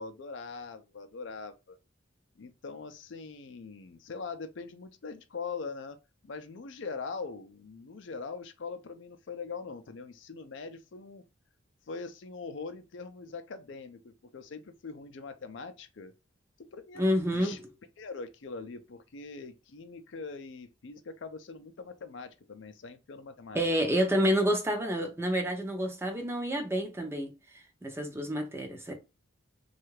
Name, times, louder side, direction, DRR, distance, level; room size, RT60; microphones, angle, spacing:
voice 1, 0.0-1.8 2.4-6.0 6.2-11.2 11.9-16.1 16.7-17.6 18.0-23.6, left 4 dB, 65° left, 0.5 m, -42 dB
voice 2, 17.0-17.7 23.5-27.3 27.8-28.9, equal, 10° right, 0.6 m, -29 dB
3.2 x 2.3 x 3.1 m
head